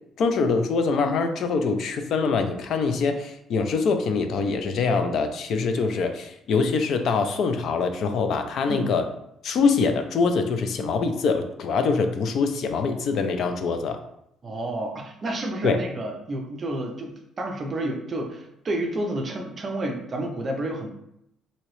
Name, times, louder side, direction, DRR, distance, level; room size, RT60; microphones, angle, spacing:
voice 1, 0.2-9.1 9.4-14.0 15.6-15.8, left 4 dB, 50° left, 7 dB, 0.3 m, -24 dB
voice 2, 14.4-20.9, right 1 dB, 25° right, 2 dB, 0.5 m, -30 dB
2.9 x 2.7 x 3.0 m, 0.78 s
cardioid pair, 165°, 0 cm